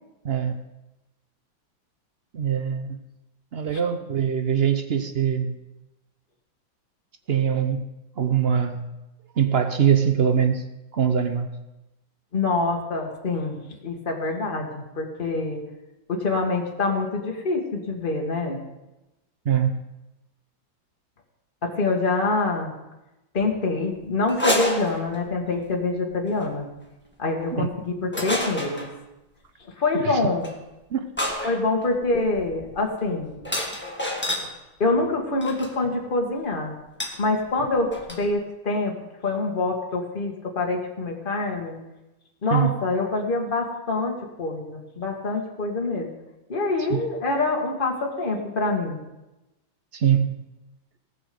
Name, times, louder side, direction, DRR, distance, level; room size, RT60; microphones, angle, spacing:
voice 1, 0.2-0.6 2.3-3.0 3.5-5.6 7.3-7.9 8.2-8.8 9.4-10.6 10.9-11.5 19.5-19.8 27.5-27.7 30.0-30.2 30.9-31.1 31.4-31.5 42.5-42.8 46.9-47.0 49.9-50.3, right 8 dB, 60° right, 8 dB, 0.6 m, -23 dB
voice 2, 12.3-15.6 16.1-18.6 21.6-22.7 23.3-26.7 27.2-28.9 29.8-30.5 31.4-33.4 34.8-36.7 37.2-37.9 38.2-38.9 39.2-41.7 42.4-46.1 46.5-49.0, left 3 dB, 25° left, 1 dB, 1.8 m, -25 dB
sound 1, 24.3-25.5 26.3-26.5 28.1-28.9 30.4-30.6 31.2-34.5 35.4-35.7 37.0-37.2 37.5-37.6 37.8-38.3, left 1 dB, 5° left, 1.6 m, -29 dB
19.0 x 7.0 x 5.2 m, 0.99 s
omnidirectional pair, 2.1 m